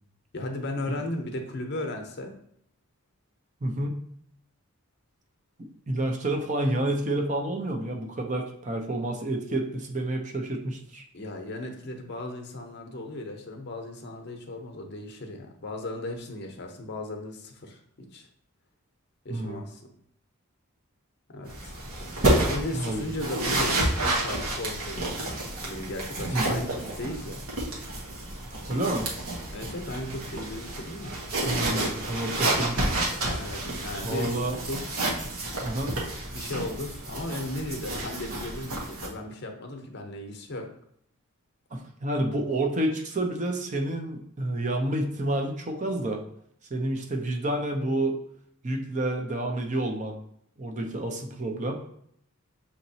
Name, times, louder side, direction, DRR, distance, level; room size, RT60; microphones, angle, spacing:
voice 1, 0.3-2.4 11.1-18.3 19.2-19.8 21.3-21.8 22.4-27.4 29.5-31.2 33.2-34.4 34.7-34.9 36.3-40.7, left 1 dB, 50° left, 3 dB, 0.7 m, -36 dB
voice 2, 3.6-4.0 5.9-11.0 19.3-19.7 22.7-23.0 26.3-26.6 28.7-29.1 31.4-32.9 34.0-34.6 35.6-36.0 41.7-46.2 46.7-48.2 48.6-50.2 50.6-51.7, right 1 dB, 35° right, 3 dB, 0.6 m, -29 dB
sound 1, 21.5-39.1, right 1 dB, 75° right, 1.2 m, -30 dB
6.5 x 3.0 x 2.7 m, 0.68 s
head